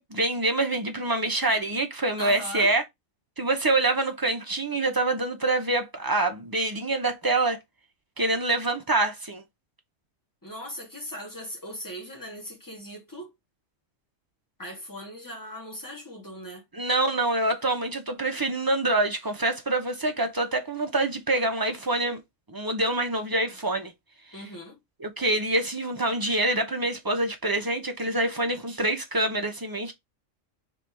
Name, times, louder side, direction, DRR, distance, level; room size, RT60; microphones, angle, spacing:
voice 1, 0.0-2.8 3.4-7.6 8.2-9.4 16.7-22.2 22.5-23.9 25.0-29.9, right 2 dB, 20° right, 0.6 m, -26 dB
voice 2, 2.2-2.7 10.4-13.3 14.6-16.6 24.3-24.8, equal, 15° left, 1.7 m, -39 dB
3.5 x 3.3 x 4.5 m
omnidirectional pair, 1.3 m